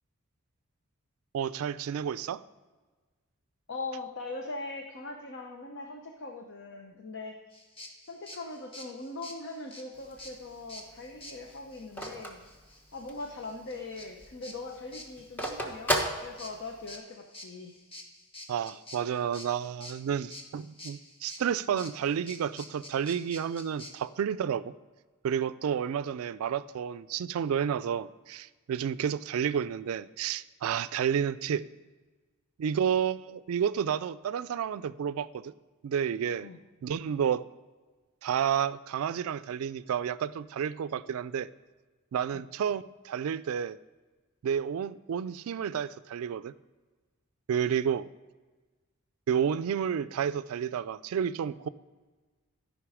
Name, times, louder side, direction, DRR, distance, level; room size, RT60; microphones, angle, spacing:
voice 1, 1.3-2.4 18.5-24.7 25.2-31.7 32.6-35.5 35.8-36.5 36.8-37.5 38.2-41.5 42.1-43.8 44.4-46.5 47.5-48.1 49.3-51.7, right 8 dB, 75° right, 16 dB, 0.3 m, -30 dB
voice 2, 3.7-7.6 8.1-12.4 12.9-17.8 36.4-36.6 42.3-42.5, left 3 dB, 55° left, 3 dB, 0.8 m, -41 dB
sound 1, 7.5-23.9, left 1 dB, 25° left, 1.3 m, -48 dB
Telephone, 9.9-13.4 13.8-13.9 14.1-17.0, equal, 10° left, 1.0 m, -34 dB
13.0 x 5.4 x 4.9 m, 1.3 s
head